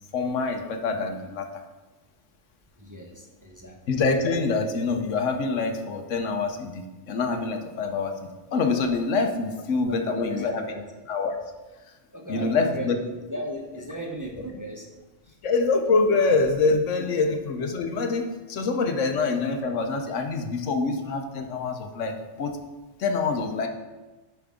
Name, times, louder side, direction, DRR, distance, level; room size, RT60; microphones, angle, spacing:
voice 1, 0.1-1.5 3.9-8.2 8.5-10.6 11.1-11.3 12.3-13.0 15.4-22.6 23.0-23.7, left 4 dB, 80° left, 5 dB, 1.2 m, -25 dB
voice 2, 2.8-4.0 9.7-10.8 12.1-14.9 15.2-15.4 16.9-17.3, right 1 dB, 20° right, 0 dB, 0.8 m, -37 dB
10.0 x 5.9 x 3.6 m, 1.2 s
omnidirectional pair, 1.3 m